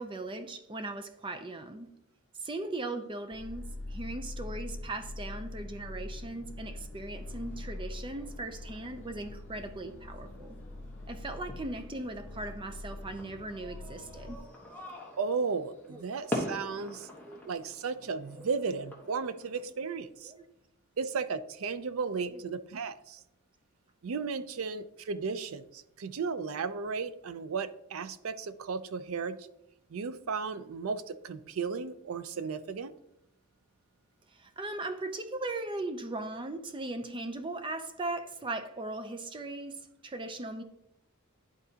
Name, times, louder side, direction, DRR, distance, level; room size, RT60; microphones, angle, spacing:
voice 1, 0.0-1.9 2.4-10.6 11.1-14.5 15.9-16.0 17.3-17.4 18.4-18.5 20.2-20.5 22.2-22.4 34.3-40.6, right 2 dB, 25° right, 0.5 m, -38 dB
sound 1, 3.3-14.4, left 2 dB, 65° left, 0.8 m, -43 dB
sound 2, 7.2-19.6, left 1 dB, 10° left, 1.1 m, -44 dB
voice 2, 15.2-17.1 17.5-20.3 21.0-23.2 24.0-29.4 29.9-32.9, right 5 dB, 75° right, 0.5 m, -35 dB
11.0 x 4.0 x 2.8 m
head